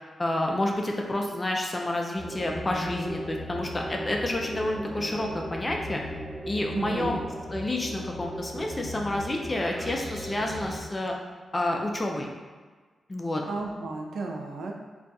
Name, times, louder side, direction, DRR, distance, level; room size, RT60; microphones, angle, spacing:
voice 1, 0.2-6.0 6.5-7.2 7.5-11.1 11.5-12.3 13.1-13.4, left 1 dB, 20° left, 0 dB, 0.3 m, -29 dB
sound 1, 2.1-10.8, equal, 5° right, 0.8 m, -37 dB
voice 2, 6.7-7.3 13.4-14.7, right 3 dB, 85° right, 2 dB, 0.3 m, -33 dB
2.3 x 2.3 x 3.9 m, 1.4 s
wide cardioid pair, 145°, 0 cm